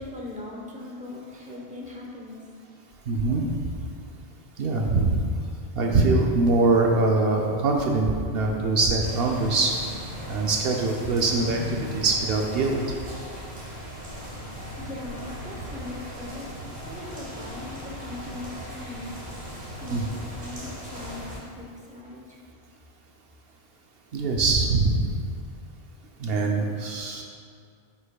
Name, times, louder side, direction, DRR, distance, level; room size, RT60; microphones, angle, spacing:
voice 1, 0.0-2.4 14.8-16.5 16.8-19.1 19.8-21.3 21.5-22.4, left 2 dB, 10° right, -3 dB, 0.8 m, -39 dB
voice 2, 3.1-3.4 4.6-5.2 5.8-9.8 10.3-12.8 19.9-20.0 24.1-25.1 26.2-27.2, right 3 dB, 70° right, 1 dB, 0.8 m, -23 dB
sound 1, 9.0-21.4, equal, 40° right, 1.3 m, -38 dB
7.8 x 5.7 x 2.3 m, 2.2 s
omnidirectional pair, 1.1 m